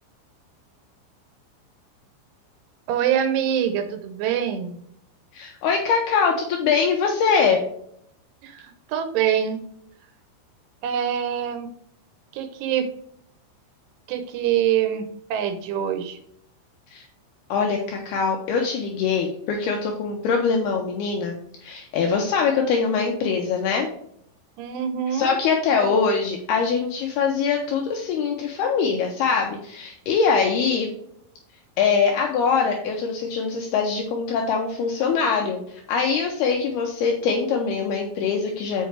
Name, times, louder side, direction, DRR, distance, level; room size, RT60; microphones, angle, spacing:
voice 1, 2.9-4.8 8.4-9.6 10.8-11.7 12.3-12.9 14.1-15.0 15.3-16.2 24.6-25.4 25.8-26.2, right 9 dB, 80° right, 8 dB, 3.3 m, -25 dB
voice 2, 5.3-7.6 16.9-17.1 17.5-21.3 21.6-23.9 25.1-30.9 31.8-38.9, left 5 dB, 80° left, 1 dB, 2.4 m, -23 dB
7.9 x 5.5 x 3.3 m, 0.68 s
omnidirectional pair, 5.5 m